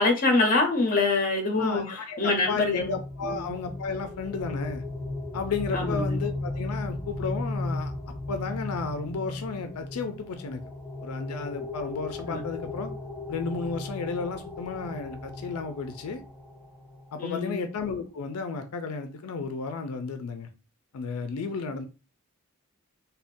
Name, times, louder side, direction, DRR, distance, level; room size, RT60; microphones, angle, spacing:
voice 1, 0.0-2.9 3.2-3.4 5.7-6.2 12.3-12.4 17.2-17.6, left 3 dB, 40° left, 0.7 m, -25 dB
voice 2, 1.6-4.8 5.3-7.9 8.3-10.6 11.0-12.9 13.3-16.2 17.1-20.5 20.9-21.9, left 4 dB, 90° left, 0.4 m, -33 dB
sound 1, 2.4-17.1, left 2 dB, ahead, 1.0 m, -36 dB
3.5 x 2.2 x 2.5 m
head